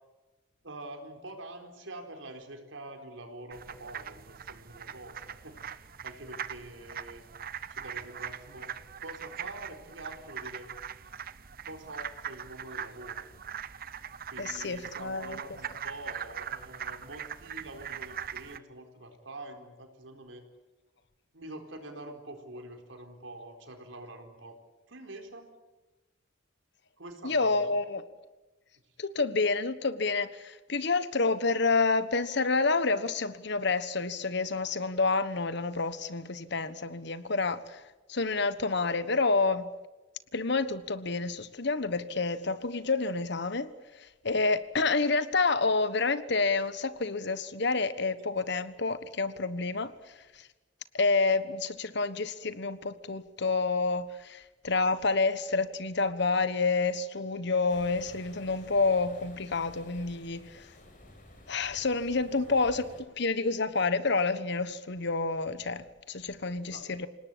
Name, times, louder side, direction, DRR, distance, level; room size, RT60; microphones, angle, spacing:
voice 1, 0.6-7.3 7.7-10.7 11.6-13.3 14.3-20.5 21.3-24.6 24.9-25.5 27.0-27.7 62.4-62.5 66.5-66.9, right 1 dB, 85° right, 4.2 m, -45 dB
sound 1, 3.5-18.6, right 8 dB, 50° right, 0.9 m, -41 dB
voice 2, 14.4-15.4 27.2-28.0 29.0-37.8 38.1-39.7 40.3-43.7 44.0-49.9 50.9-60.6 61.5-67.1, left 3 dB, 60° left, 1.3 m, -29 dB
sound 2, 57.7-63.0, left 1 dB, 45° left, 5.9 m, -52 dB
28.0 x 18.5 x 8.7 m
head